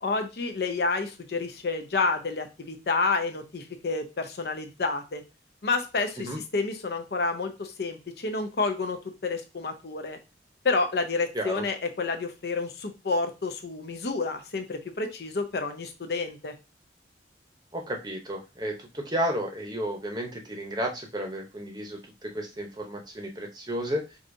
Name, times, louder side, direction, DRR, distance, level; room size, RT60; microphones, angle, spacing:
voice 1, 0.0-5.2 5.6-10.2 10.6-16.5, left 3 dB, 60° left, 6 dB, 0.6 m, -29 dB
voice 2, 17.7-24.2, equal, 20° right, 2 dB, 0.8 m, -32 dB
4.8 x 2.7 x 2.6 m, 0.27 s
head